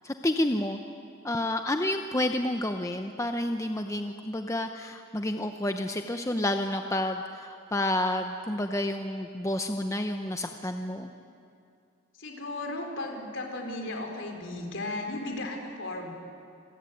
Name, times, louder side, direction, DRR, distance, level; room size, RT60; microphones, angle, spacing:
voice 1, 0.0-0.8 1.2-11.1, left 1 dB, 15° left, 6 dB, 0.8 m, -30 dB
voice 2, 12.1-16.1, left 2 dB, 60° left, 3 dB, 4.3 m, -35 dB
28.0 x 21.5 x 9.4 m, 2.5 s
head